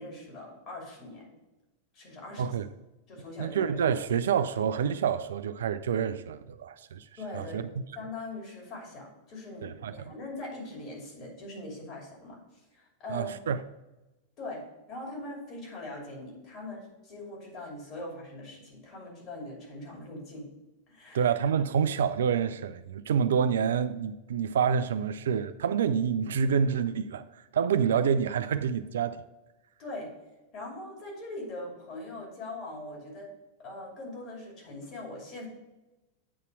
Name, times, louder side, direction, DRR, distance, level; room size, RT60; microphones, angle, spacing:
voice 1, 0.0-1.3 1.9-2.5 3.1-3.8 7.2-7.7 8.0-13.3 14.4-14.6 14.9-20.5 20.9-21.3 29.8-30.1 30.5-33.3 33.6-35.5, left 2 dB, 35° left, 2.7 m, -41 dB
voice 2, 2.4-2.7 3.4-7.1 7.3-7.6 9.6-10.1 13.1-13.6 21.1-27.2 27.5-29.2, right 7 dB, 65° right, 0.3 m, -27 dB
8.3 x 4.1 x 4.7 m
figure-of-eight pair, 90°, 0 cm